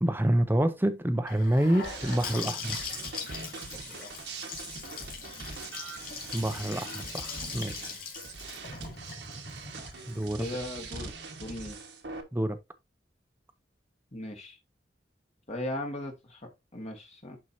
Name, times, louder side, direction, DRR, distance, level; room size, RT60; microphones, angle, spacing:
voice 1, 0.0-2.8 6.3-7.8 10.1-10.5 12.3-12.6, right 1 dB, 10° right, 0.7 m, -27 dB
Gurgling / Sink (filling or washing) / Bathtub (filling or washing), 1.3-11.1, left 5 dB, 55° left, 2.8 m, -41 dB
sound 1, 1.8-12.2, right 4 dB, 70° right, 1.4 m, -42 dB
voice 2, 10.4-11.1 11.4-11.8 14.1-14.6 15.5-17.4, left 1 dB, 40° left, 1.8 m, -38 dB
11.0 x 4.5 x 2.7 m
head